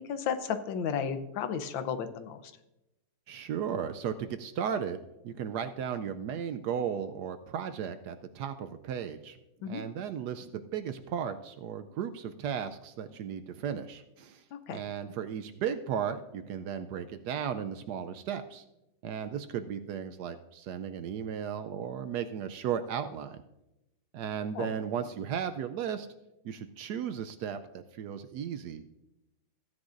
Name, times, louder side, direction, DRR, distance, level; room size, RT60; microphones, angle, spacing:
voice 1, 0.1-2.4 9.6-9.8 14.5-14.8 24.5-24.7, left 7 dB, 85° left, 10 dB, 1.5 m, -33 dB
voice 2, 3.3-9.4 9.7-14.4 14.7-18.6 19.0-23.4 24.1-26.1 26.4-28.8, right 8 dB, 75° right, 9 dB, 1.0 m, -35 dB
15.5 x 9.7 x 2.5 m, 0.93 s
omnidirectional pair, 2.1 m